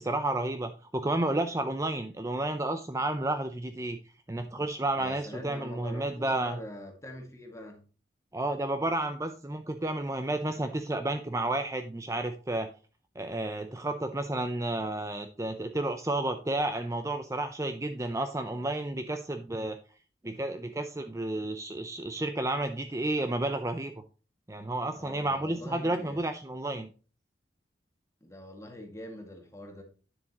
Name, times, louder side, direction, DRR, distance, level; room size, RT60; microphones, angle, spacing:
voice 1, 0.0-4.0 4.3-6.6 8.3-12.7 13.2-19.8 20.2-23.9 24.5-26.9, right 2 dB, 15° right, 0.5 m, -31 dB
voice 2, 4.9-7.8 24.9-26.2 28.2-29.8, left 1 dB, 15° left, 2.0 m, -44 dB
9.8 x 7.4 x 3.0 m
head